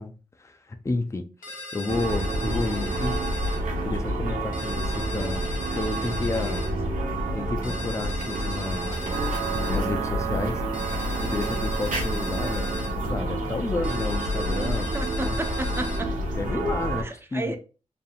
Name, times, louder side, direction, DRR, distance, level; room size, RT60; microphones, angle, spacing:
voice 1, 0.0-3.2 3.8-6.6 7.3-9.1 9.5-10.6 11.2-12.8 13.1-14.9 15.2-15.4 16.3-17.6, left 2 dB, 20° left, 0.5 m, -31 dB
sound 1, 1.4-3.6 4.5-6.7 7.6-9.8 10.7-12.9 13.8-16.0, left 2 dB, 70° left, 1.6 m, -38 dB
sound 2, 1.9-17.0, right 1 dB, 80° right, 1.4 m, -28 dB
voice 2, 6.4-6.7 14.8-16.1 17.0-17.6, right 1 dB, 15° right, 0.7 m, -33 dB
sound 3, 9.1-13.4, right 7 dB, 50° right, 1.4 m, -34 dB
4.7 x 3.4 x 2.4 m
cardioid pair, 80°, 14 cm